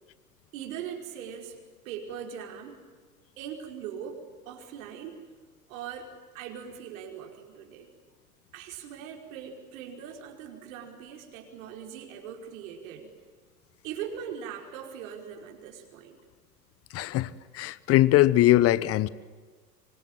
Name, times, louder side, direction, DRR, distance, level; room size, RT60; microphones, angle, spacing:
voice 1, 0.5-1.6 1.9-2.8 3.4-5.2 5.7-7.9 8.5-13.1 13.8-16.2, right 8 dB, 55° right, 5.2 m, -40 dB
voice 2, 16.9-19.1, left 15 dB, 30° left, 1.0 m, -21 dB
25.0 x 25.0 x 9.2 m
figure-of-eight pair, 95°, 49 cm